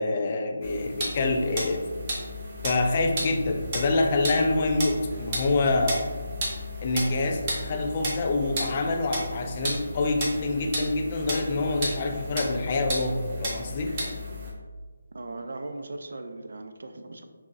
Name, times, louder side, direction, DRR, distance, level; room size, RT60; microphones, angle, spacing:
voice 1, 0.0-1.8 2.6-6.1 6.8-14.0, left 2 dB, 30° left, 3 dB, 0.3 m, -26 dB
sound 1, 0.6-14.5, equal, 25° right, 0.8 m, -34 dB
voice 2, 15.1-17.3, right 2 dB, 70° right, 7 dB, 0.4 m, -38 dB
6.0 x 2.1 x 2.5 m, 1.5 s
hypercardioid pair, 170°, 0 cm